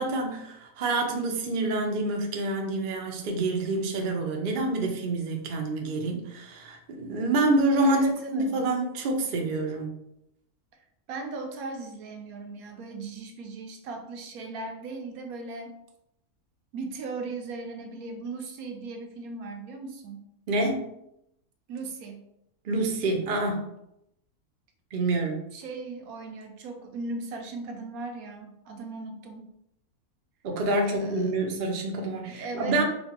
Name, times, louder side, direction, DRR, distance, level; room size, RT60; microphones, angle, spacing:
voice 1, 0.0-8.1 8.3-9.9 20.5-20.9 22.6-23.7 24.9-25.4 30.4-32.8, right 2 dB, 55° right, 2 dB, 0.6 m, -27 dB
voice 2, 7.8-8.7 10.7-10.8 11.1-15.8 16.7-20.2 21.7-22.2 25.5-29.5 30.8-31.3 32.3-32.8, right 3 dB, 80° right, 3 dB, 1.1 m, -38 dB
4.3 x 2.3 x 2.8 m, 0.79 s
omnidirectional pair, 1.5 m